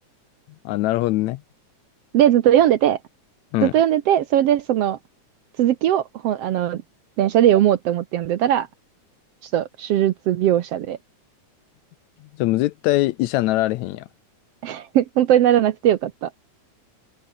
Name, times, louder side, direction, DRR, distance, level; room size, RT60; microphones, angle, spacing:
voice 1, 0.7-1.4 3.5-3.7 12.4-14.1, left 17 dB, 75° left, 1.8 m, -22 dB
voice 2, 2.1-3.0 3.6-5.0 5.6-6.8 7.2-8.7 9.5-11.0 14.6-16.3, right 11 dB, 70° right, 1.6 m, -19 dB
open air
omnidirectional pair, 3.5 m